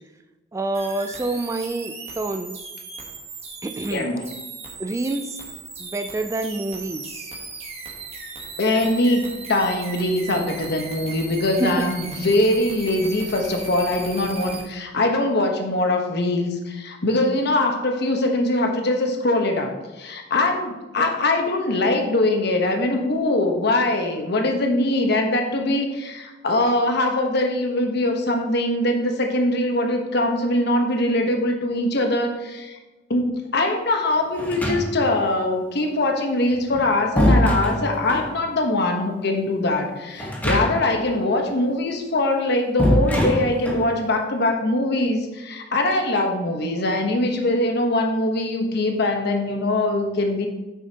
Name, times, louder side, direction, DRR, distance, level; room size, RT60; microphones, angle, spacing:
voice 1, 0.5-2.6 3.6-4.1 4.8-5.4 5.8-7.3 11.6-11.8, right 2 dB, 15° right, 7 dB, 0.3 m, -27 dB
sound 1, 0.7-14.7, right 4 dB, 35° right, 1.3 m, -37 dB
voice 2, 3.9-4.3 8.6-32.8 33.1-50.5, left 1 dB, 60° left, 3 dB, 1.1 m, -22 dB
sound 2, 34.4-35.2 36.5-38.3 40.2-41.0 41.3-41.4 42.8-43.9, equal, 10° left, 1.2 m, -22 dB
8.6 x 6.4 x 2.9 m, 1.1 s
head